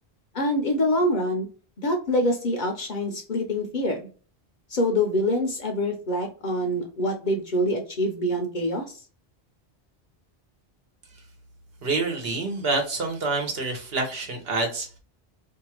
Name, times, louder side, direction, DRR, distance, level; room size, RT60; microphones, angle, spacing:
voice 1, 0.3-1.5 1.8-4.0 4.7-8.8, left 1 dB, 50° left, 3 dB, 0.6 m, -25 dB
voice 2, 11.8-15.0, right 3 dB, 65° right, 3 dB, 1.1 m, -27 dB
2.6 x 2.3 x 2.9 m, 0.38 s
omnidirectional pair, 1.1 m